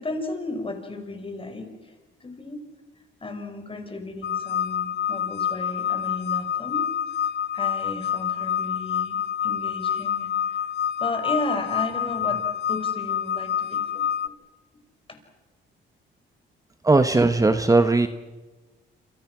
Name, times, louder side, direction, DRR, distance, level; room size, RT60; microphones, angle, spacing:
voice 1, 0.0-1.9 2.2-2.6 3.2-6.9 7.2-7.3 7.5-9.2 9.4-10.6 11.0-14.3 15.1-15.2, left 2 dB, 25° left, 6 dB, 5.5 m, -34 dB
sound 1, 4.2-14.3, left 9 dB, 60° left, 0.8 m, -27 dB
voice 2, 16.8-18.1, right 3 dB, 15° right, 9 dB, 1.2 m, -18 dB
27.5 x 27.0 x 6.2 m, 1.2 s
cardioid pair, 90°, 20 cm